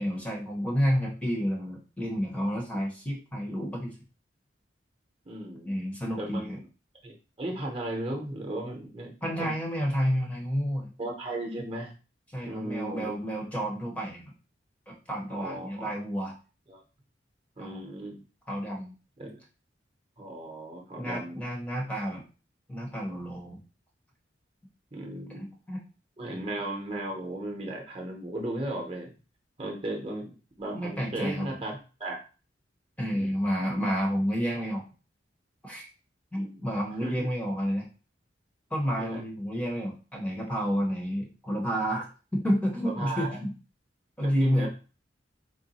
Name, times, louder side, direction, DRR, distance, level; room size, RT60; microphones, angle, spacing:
voice 1, 0.0-3.9 5.7-6.6 9.2-10.9 12.3-14.3 14.9-16.3 17.6-17.8 18.5-18.9 21.0-22.2 22.7-23.6 25.7-25.8 26.3-26.4 30.7-31.5 33.0-34.8 35.6-35.9 36.3-37.9 38.7-43.5 44.2-44.7, equal, 10° left, -1 dB, 0.7 m, -30 dB
voice 2, 5.2-5.9 6.2-6.6 7.0-9.5 11.0-11.9 12.4-13.2 15.3-15.9 16.7-16.8 17.6-18.2 19.2-19.4 20.2-21.4 24.9-25.5 26.2-29.1 29.6-32.2 33.1-33.4 36.3-36.6 37.0-37.3 39.0-39.2 42.9-43.4 44.2-44.7, right 1 dB, 30° right, 1 dB, 0.8 m, -36 dB
3.7 x 2.2 x 4.1 m, 0.34 s
head